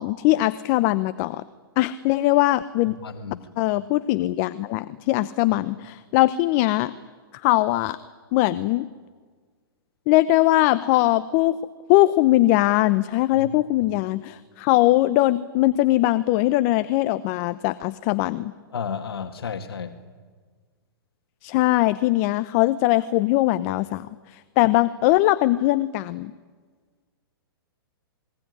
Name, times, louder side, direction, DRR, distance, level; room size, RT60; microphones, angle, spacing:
voice 1, 0.0-1.4 1.8-3.0 3.6-6.9 7.4-8.0 8.3-8.9 10.1-11.6 11.9-18.5 21.4-26.3, left 17 dB, 40° left, 15 dB, 0.8 m, -21 dB
voice 2, 3.0-3.4 13.4-13.5 18.7-20.0, left 6 dB, 80° left, 6 dB, 2.0 m, -32 dB
27.0 x 22.0 x 10.0 m, 1.5 s
hypercardioid pair, 135°, 13 cm